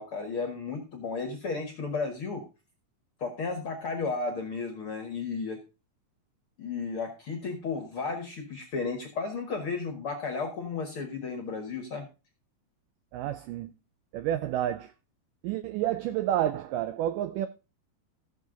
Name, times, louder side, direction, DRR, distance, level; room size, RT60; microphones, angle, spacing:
voice 1, 0.0-2.4 3.2-5.6 6.6-12.1, left 4 dB, 50° left, 1.7 m, -33 dB
voice 2, 13.1-13.7 14.1-14.9 15.4-17.5, right 12 dB, 85° right, 1.9 m, -29 dB
15.5 x 6.6 x 3.9 m
omnidirectional pair, 4.5 m